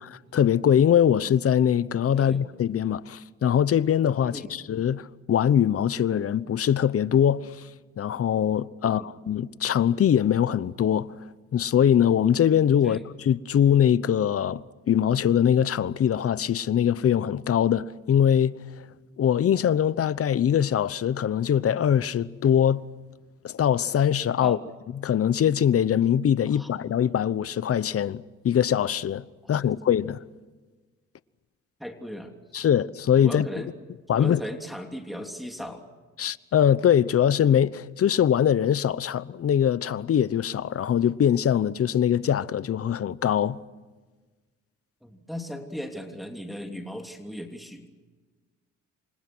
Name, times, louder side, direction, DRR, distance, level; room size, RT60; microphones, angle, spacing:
voice 1, 0.0-7.5 8.0-11.1 11.5-13.0 13.2-18.6 19.2-22.8 23.4-24.6 25.0-30.2 32.5-33.5 34.1-34.4 36.2-43.6, left 9 dB, 50° left, 0.9 m, -22 dB
voice 2, 31.8-32.3 33.2-33.8 34.1-35.8 45.0-47.9, equal, ahead, 3.1 m, -37 dB
29.0 x 25.5 x 6.3 m
cardioid pair, 90°, 30 cm